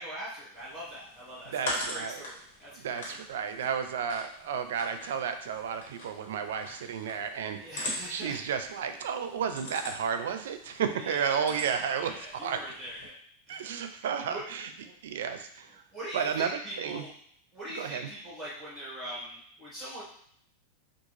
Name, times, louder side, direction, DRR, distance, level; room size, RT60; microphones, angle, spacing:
voice 1, 0.0-3.3 7.6-8.4 11.0-13.1 13.5-13.9 14.3-14.4 14.8-14.9 15.9-17.1 17.5-20.0, right 1 dB, 15° right, -8 dB, 1.2 m, -42 dB
sound 1, 0.5-13.1, left 1 dB, 70° left, 1.3 m, -42 dB
voice 2, 1.5-2.2 2.8-7.6 8.1-12.6 13.5-14.7 15.0-15.8 16.1-17.0 17.7-18.1, right 7 dB, 80° right, 8 dB, 0.4 m, -32 dB
3.6 x 2.3 x 3.1 m, 0.63 s
supercardioid pair, 155°, 0 cm